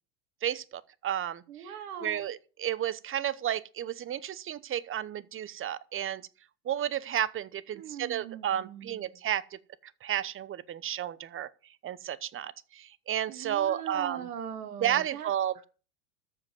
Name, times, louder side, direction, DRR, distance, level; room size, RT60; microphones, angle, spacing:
voice 1, 0.4-1.7 2.0-6.2 6.6-11.5 11.8-14.3 14.8-15.5, right 10 dB, 30° right, 0.9 m, -32 dB
voice 2, 1.5-2.2 7.7-9.1 13.3-15.3, right 8 dB, 80° right, 2.6 m, -40 dB
14.0 x 5.2 x 7.7 m
hypercardioid pair, 95°, 44 cm